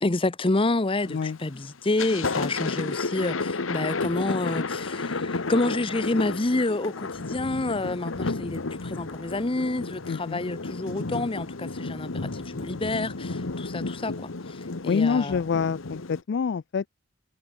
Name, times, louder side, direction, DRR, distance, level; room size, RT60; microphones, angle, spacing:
voice 1, 0.0-15.4, left 2 dB, 25° left, 0.8 m, -28 dB
Thunder, 1.0-1.4 1.8-16.2, left 3 dB, 85° left, 1.2 m, -32 dB
voice 2, 1.1-1.4 10.1-10.4 14.8-16.9, left 5 dB, 60° left, 0.4 m, -26 dB
head